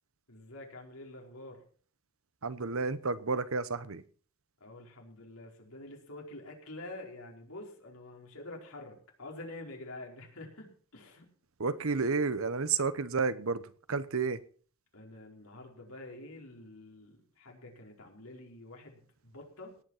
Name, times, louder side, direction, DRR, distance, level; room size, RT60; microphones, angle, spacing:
voice 1, 0.3-1.6 4.6-11.3 11.9-12.0 14.9-19.8, left 2 dB, 75° left, 0 dB, 4.7 m, -47 dB
voice 2, 2.4-4.0 11.6-14.4, right 4 dB, 70° right, 14 dB, 1.0 m, -31 dB
18.0 x 9.4 x 5.7 m, 0.44 s
head